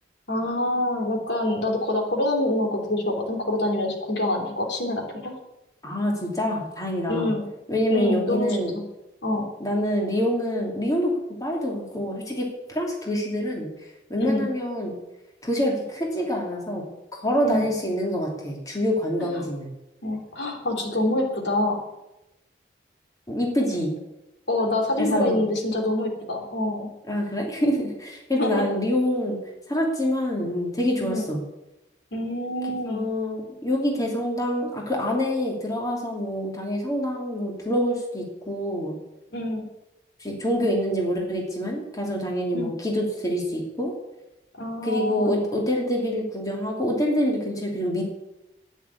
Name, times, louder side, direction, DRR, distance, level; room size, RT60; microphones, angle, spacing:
voice 1, 0.3-5.3 7.1-7.4 7.9-8.8 9.2-9.5 14.2-14.5 17.4-17.7 19.2-19.4 20.0-21.8 24.5-26.9 28.3-28.6 31.0-31.2 32.1-33.0 39.3-39.7 42.5-42.7 44.6-45.5, left 1 dB, 70° left, 2 dB, 3.3 m, -26 dB
voice 2, 5.8-7.3 7.7-8.7 9.6-11.1 11.4-13.7 14.1-14.9 15.4-16.8 17.2-19.7 23.3-23.9 25.0-25.4 27.1-29.4 29.7-31.4 32.9-38.9 40.2-43.9 44.8-48.0, equal, 20° left, -1 dB, 2.7 m, -26 dB
10.5 x 9.5 x 9.7 m, 0.97 s
head